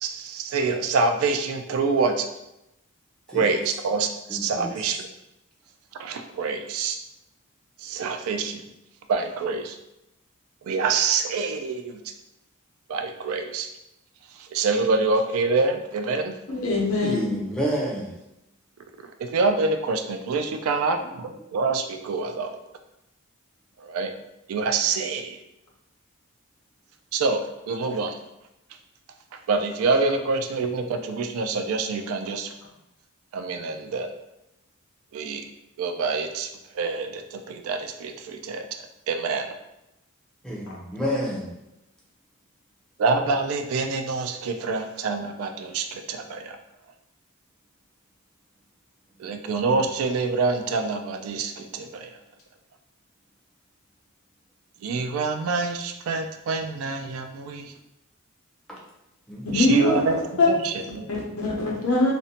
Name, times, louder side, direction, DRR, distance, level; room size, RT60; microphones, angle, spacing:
voice 1, 0.0-2.3 3.3-5.1 6.0-7.0 7.8-8.6 9.1-9.8 10.6-12.0 12.9-13.7 14.5-16.3 19.2-21.0 21.5-22.6 23.8-24.1 24.5-25.4 27.1-28.2 29.5-32.5 33.3-34.1 35.1-35.4 35.8-36.5 36.8-38.7 39.1-39.5 43.0-46.6 49.2-52.1 54.8-57.7 59.5-60.2 60.4-61.1, right 4 dB, 75° right, 6 dB, 0.3 m, -26 dB
voice 2, 4.3-5.0 17.0-18.2 21.0-21.1 40.4-41.5 58.7-58.8 59.3-59.9 61.0-61.1, equal, 5° left, -5 dB, 0.5 m, -30 dB
voice 3, 16.5-17.2 59.4-60.5 61.1-62.1, left 2 dB, 75° left, -2 dB, 0.7 m, -22 dB
2.5 x 2.1 x 2.8 m, 0.88 s
head